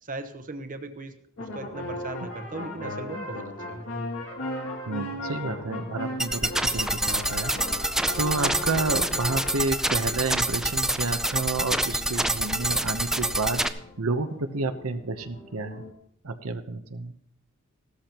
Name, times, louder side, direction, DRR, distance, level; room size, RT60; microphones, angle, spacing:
voice 1, 0.0-3.9, right 2 dB, 40° right, 8 dB, 1.0 m, -38 dB
sound 1, 1.4-9.8 10.2-15.9, left 1 dB, 70° left, 2.7 m, -38 dB
voice 2, 4.9-7.5 8.2-13.6 14.0-15.8 16.2-17.1, right 3 dB, 85° right, 7 dB, 0.9 m, -30 dB
sound 2, 6.2-13.7, right 1 dB, 5° right, 0.5 m, -27 dB
16.5 x 13.5 x 3.0 m, 0.68 s
head